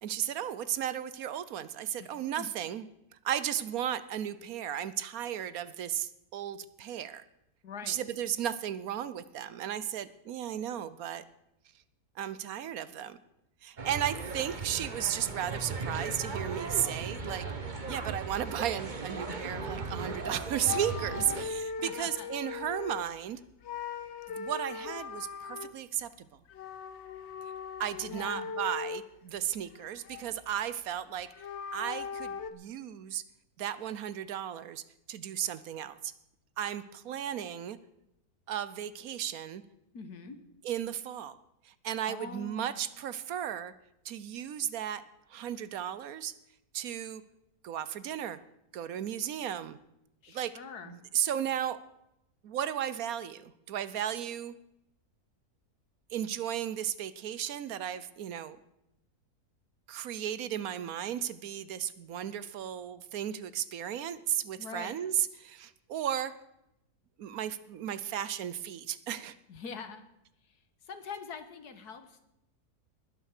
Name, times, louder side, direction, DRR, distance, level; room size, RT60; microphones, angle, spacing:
voice 1, 0.0-2.9 3.2-7.2 7.8-11.2 12.2-13.2 13.6-17.5 17.9-23.4 24.3-26.3 27.8-31.3 31.7-33.2 33.6-36.1 36.6-37.8 38.5-39.6 40.6-41.4 41.6-43.7 44.0-45.0 45.3-46.3 46.7-47.2 47.6-48.4 48.7-49.8 50.3-50.6 50.8-51.8 52.4-54.5 56.1-58.6 59.9-66.3 67.2-69.3, right 10 dB, 70° right, 16 dB, 1.1 m, -35 dB
voice 2, 7.6-8.0 21.8-22.3 28.1-28.5 39.9-40.4 42.0-42.8 50.2-50.9 64.6-64.9 69.5-70.0 70.9-72.2, left 5 dB, 80° left, 9 dB, 1.9 m, -43 dB
sound 1, 13.8-21.4, right 4 dB, 30° right, 1.3 m, -37 dB
sound 2, 20.1-20.3 20.6-23.2 23.6-25.8 26.5-29.1 29.5-30.5 31.2-32.5, left 6 dB, 50° left, 1.0 m, -39 dB
20.0 x 7.6 x 6.6 m, 0.84 s
omnidirectional pair, 1.7 m